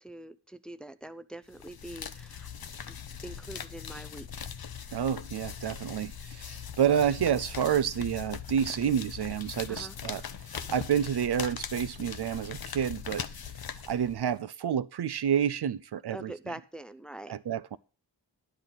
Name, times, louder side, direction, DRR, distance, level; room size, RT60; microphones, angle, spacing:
voice 1, 0.0-2.5 2.9-3.0 3.2-4.3 9.7-10.0 16.1-17.3, right 1 dB, ahead, 0.6 m, -44 dB
sound 1, 1.5-14.4, left 7 dB, 55° left, 0.8 m, -41 dB
voice 2, 4.9-10.2 10.5-13.2 13.9-16.3 17.3-17.8, right 9 dB, 60° right, 0.5 m, -29 dB
10.5 x 10.0 x 4.0 m
cardioid pair, 60°, 45 cm